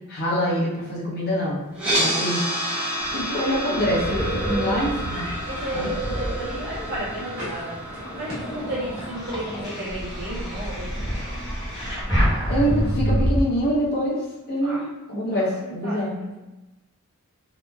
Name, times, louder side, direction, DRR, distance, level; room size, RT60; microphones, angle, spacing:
voice 1, 0.1-1.6 1.9-2.4 3.1-5.3 5.7-5.9 12.5-14.2 14.5-16.2, equal, 45° left, -6 dB, 0.7 m, -25 dB
sound 1, 1.7-11.8, right 1 dB, 5° right, 0.7 m, -31 dB
voice 2, 1.9-2.2 4.3-11.1 14.6-14.8 15.3-16.4, right 1 dB, 50° right, -9 dB, 0.5 m, -34 dB
sound 2, 3.0-7.2 7.8-13.4, equal, 20° left, 0.9 m, -28 dB
sound 3, 3.7-13.0, equal, 70° right, 1.1 m, -39 dB
2.9 x 2.1 x 2.2 m, 1.0 s
head